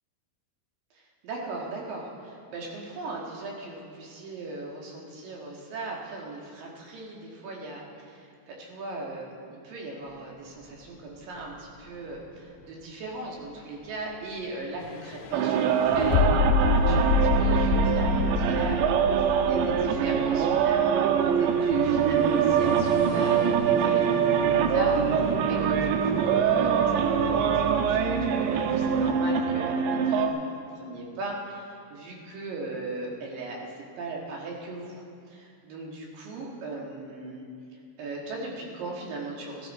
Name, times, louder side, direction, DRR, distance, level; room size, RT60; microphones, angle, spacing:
voice 1, 0.9-33.7 34.0-37.4 38.0-39.7, right 2 dB, 60° right, -2 dB, 3.1 m, -38 dB
sound 1, 10.1-29.0, left 1 dB, 10° right, 1.1 m, -40 dB
sound 2, 14.8-29.1, left 5 dB, 85° left, 2.8 m, -30 dB
sound 3, 15.3-30.3, right 8 dB, 90° right, 2.9 m, -24 dB
16.5 x 14.5 x 4.3 m, 2.3 s
omnidirectional pair, 5.1 m